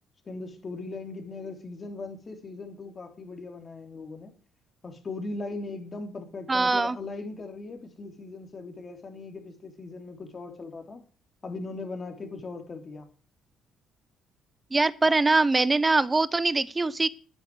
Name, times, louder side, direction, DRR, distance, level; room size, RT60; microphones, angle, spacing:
voice 1, 0.3-4.3 4.8-11.0 11.4-13.1 15.0-15.1, left 3 dB, 30° left, 3.4 m, -39 dB
voice 2, 6.5-7.0 14.7-17.1, right 3 dB, 15° right, 0.8 m, -23 dB
12.0 x 9.8 x 7.9 m
cardioid pair, 130°, 0 cm